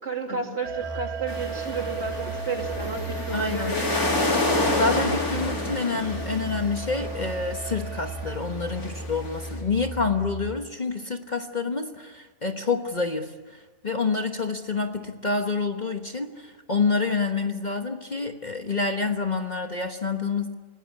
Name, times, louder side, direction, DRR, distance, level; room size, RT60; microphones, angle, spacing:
voice 1, 0.0-4.3, right 4 dB, 40° right, 3 dB, 3.1 m, -32 dB
sound 1, 0.6-8.4, right 6 dB, 65° right, 1.5 m, -38 dB
Musical instrument, 0.8-10.8, right 1 dB, 10° left, 1.6 m, -37 dB
sound 2, 1.3-9.5, left 2 dB, 65° left, 4.4 m, -29 dB
voice 2, 3.3-3.8 4.8-20.5, left 4 dB, 30° left, 5 dB, 1.2 m, -28 dB
28.5 x 19.0 x 9.7 m, 1.4 s
omnidirectional pair, 1.7 m